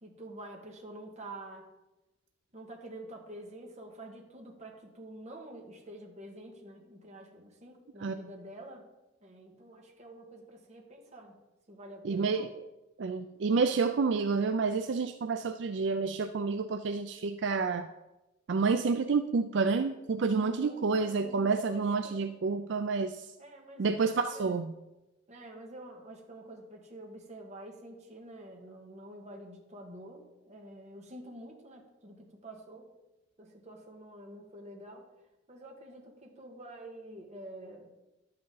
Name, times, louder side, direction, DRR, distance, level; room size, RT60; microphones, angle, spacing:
voice 1, 0.0-1.7 2.5-8.9 9.2-11.4 11.7-12.5 20.4-22.2 23.4-24.5 25.3-32.9 33.4-35.1 35.5-37.9, right 1 dB, 35° right, 1 dB, 1.6 m, -48 dB
voice 2, 12.0-12.5 13.0-17.9 18.5-23.3 23.8-24.7, right 4 dB, 65° right, 9 dB, 0.4 m, -29 dB
11.5 x 7.9 x 3.9 m, 1.0 s
head